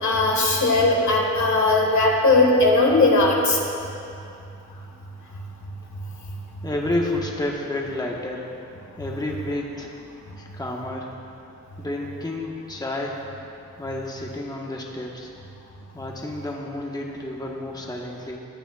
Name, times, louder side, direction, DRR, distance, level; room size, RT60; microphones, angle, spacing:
voice 1, 0.0-3.6, left 2 dB, 65° left, -1 dB, 1.6 m, -18 dB
voice 2, 6.6-8.5 9.0-9.9 10.4-11.1 11.8-13.2 13.8-15.3 15.9-18.4, left 1 dB, 10° left, -1 dB, 1.3 m, -30 dB
15.5 x 8.9 x 2.4 m, 2.6 s
cardioid pair, 60°, 32 cm